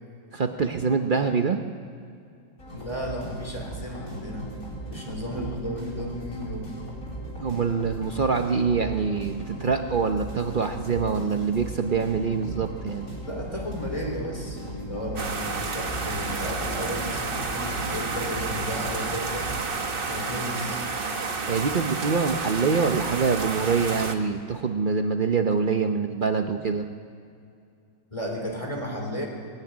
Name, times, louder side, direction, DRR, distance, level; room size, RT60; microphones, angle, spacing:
voice 1, 0.3-1.6 7.4-13.1 21.5-26.9, right 5 dB, 75° right, 5 dB, 0.4 m, -25 dB
sound 1, 2.6-19.6, right 1 dB, 45° left, 4.9 m, -38 dB
voice 2, 2.7-4.5 4.9-6.8 13.2-19.5 20.1-20.8 28.1-29.3, equal, 15° left, 1 dB, 3.8 m, -34 dB
sound 2, 15.2-24.1, right 4 dB, 35° right, 1.2 m, -31 dB
19.5 x 15.0 x 9.5 m, 2.4 s
omnidirectional pair, 2.1 m